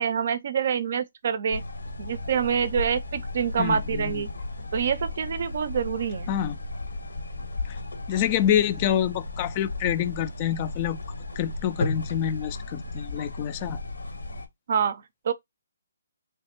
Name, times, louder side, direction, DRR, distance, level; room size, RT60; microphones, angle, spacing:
voice 1, 0.0-1.6 2.0-4.3 4.7-6.4 14.7-15.3, right 7 dB, 50° right, 0.5 m, -26 dB
sound 1, 1.5-14.5, left 2 dB, 90° left, 1.2 m, -35 dB
voice 2, 3.6-4.2 6.3-6.6 7.7-7.8 8.1-11.0 11.4-13.8, left 10 dB, 30° left, 0.3 m, -27 dB
3.3 x 3.1 x 2.9 m
hypercardioid pair, 155°, 0 cm